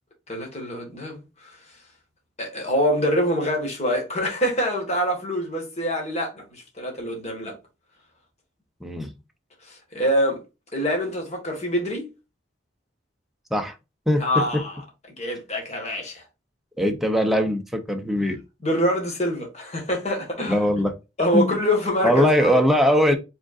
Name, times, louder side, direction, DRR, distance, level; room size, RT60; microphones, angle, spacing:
voice 1, 0.3-1.6 2.4-7.6 9.6-10.4 10.7-12.1 14.2-14.8 15.2-16.2 18.6-20.6 21.2-22.6, equal, 35° left, 1.6 m, -25 dB
voice 2, 14.1-14.6 16.8-18.4 20.5-20.9 21.3-21.5 22.0-23.2, equal, ahead, 0.6 m, -21 dB
5.0 x 3.7 x 2.4 m
head